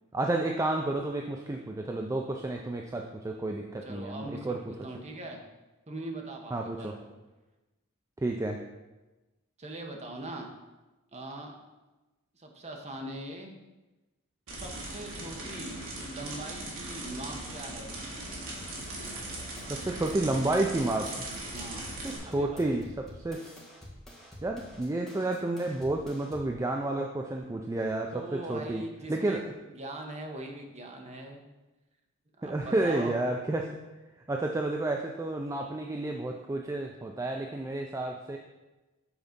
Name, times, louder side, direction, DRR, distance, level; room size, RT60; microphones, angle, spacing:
voice 1, 0.1-4.6 6.5-6.9 8.2-8.6 19.7-21.1 22.0-23.4 24.4-28.8 29.1-29.5 32.4-33.7 34.3-38.4, right 2 dB, 15° right, 1 dB, 0.4 m, -31 dB
voice 2, 3.8-5.4 5.9-7.0 9.6-10.6 11.1-11.6 12.4-13.6 14.5-17.9 21.5-21.8 22.2-22.6 28.1-31.5 32.4-33.1, right 2 dB, 30° right, 2 dB, 0.9 m, -41 dB
sound 1, 14.5-22.2, right 1 dB, 60° right, 1.8 m, -39 dB
sound 2, 18.6-26.6, equal, ahead, 1.4 m, -49 dB
7.2 x 3.9 x 5.2 m, 1.1 s
head